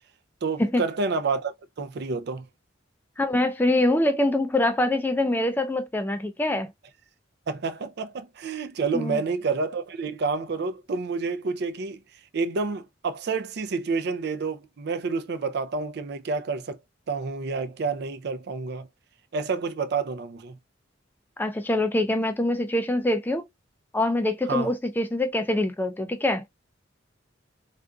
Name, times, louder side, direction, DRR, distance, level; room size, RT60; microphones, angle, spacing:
voice 1, 0.4-2.5 7.5-12.0 12.3-16.8 17.1-18.9 19.3-20.6 24.5-24.7, right 4 dB, 60° right, 0.4 m, -29 dB
voice 2, 3.2-6.7 8.9-9.2 21.4-23.5 23.9-26.4, left 1 dB, 10° left, 0.3 m, -24 dB
3.7 x 2.5 x 2.2 m
head